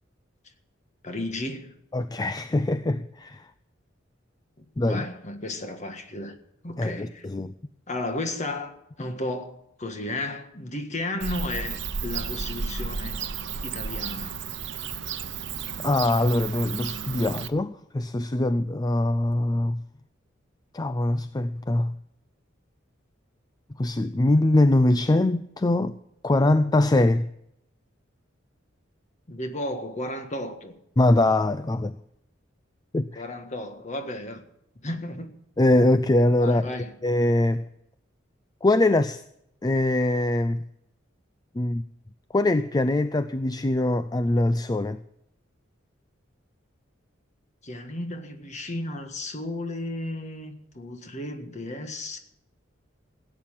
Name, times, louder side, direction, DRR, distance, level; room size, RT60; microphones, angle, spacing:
voice 1, 1.0-1.8 4.8-6.3 6.6-7.2 7.9-8.7 9.0-13.2 13.6-14.4 29.3-30.7 33.1-34.4 34.8-35.3 36.4-36.9 47.6-52.2, left 1 dB, 40° left, 1.6 m, -33 dB
voice 2, 1.9-3.4 4.8-5.1 6.8-7.5 15.8-19.8 20.7-21.9 23.8-26.0 26.2-27.3 31.0-31.9 32.9-33.2 35.6-36.7 37.0-37.6 38.6-39.2 39.6-40.6 41.6-41.8 42.3-45.0, left 2 dB, 20° left, 0.4 m, -22 dB
Bird / Cricket, 11.2-17.5, right 6 dB, 70° right, 0.9 m, -33 dB
16.0 x 8.8 x 7.4 m
head